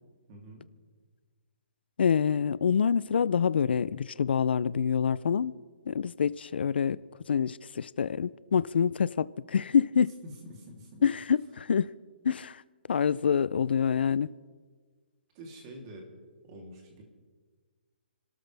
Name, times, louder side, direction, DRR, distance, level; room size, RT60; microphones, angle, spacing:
voice 1, 0.3-0.6 10.2-11.0 15.3-16.1 16.4-17.0, right 1 dB, 25° right, 3.0 m, -46 dB
voice 2, 2.0-5.5 5.9-7.0 7.3-10.1 11.0-11.9 12.2-12.6 12.9-14.3, left 7 dB, 65° left, 0.4 m, -26 dB
30.0 x 13.5 x 3.4 m
hypercardioid pair, 170°, 6 cm